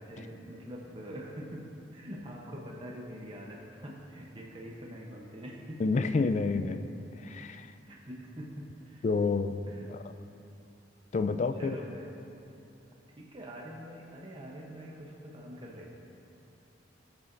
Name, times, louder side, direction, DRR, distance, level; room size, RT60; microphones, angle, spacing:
voice 1, 0.0-5.8 7.9-9.0 9.7-9.9 11.6-12.1 13.2-16.0, equal, 30° right, -2 dB, 0.9 m, -44 dB
voice 2, 5.8-6.8 7.2-7.7 9.0-9.6 9.9-10.1 11.1-11.7, left 4 dB, 40° left, 9 dB, 0.3 m, -29 dB
16.0 x 6.9 x 2.6 m, 2.7 s
head